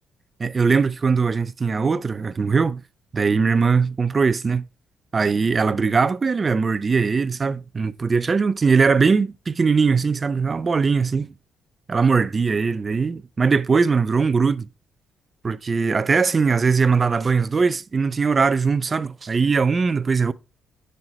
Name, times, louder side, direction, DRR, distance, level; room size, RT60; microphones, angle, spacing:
voice 1, 0.4-2.8 3.1-4.6 5.1-11.3 11.9-14.7 15.4-20.3, right 5 dB, 35° right, 0.4 m, -20 dB
9.2 x 5.5 x 3.2 m
cardioid pair, 90°, 0 cm